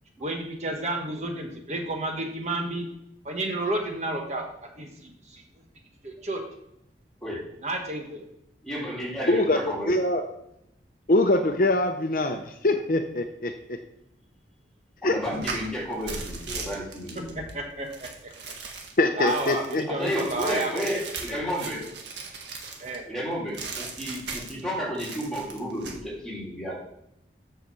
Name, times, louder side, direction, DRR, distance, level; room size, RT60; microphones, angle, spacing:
voice 1, 0.2-2.9 3.2-5.4 6.0-6.4 7.6-8.2 17.1-18.3 19.2-20.9 22.8-23.1, right 2 dB, 40° right, 2 dB, 1.2 m, -31 dB
voice 2, 8.6-9.9 15.0-17.3 19.9-21.9 23.1-26.8, equal, 5° left, -5 dB, 3.2 m, -32 dB
voice 3, 9.3-10.2 11.1-13.8 15.0-15.2 19.0-19.8, left 2 dB, 50° left, 6 dB, 0.7 m, -23 dB
sound 1, 15.2-23.0 23.5-24.7 25.0-26.0, right 4 dB, 75° right, 1.7 m, -38 dB
7.9 x 5.9 x 6.8 m, 0.80 s
head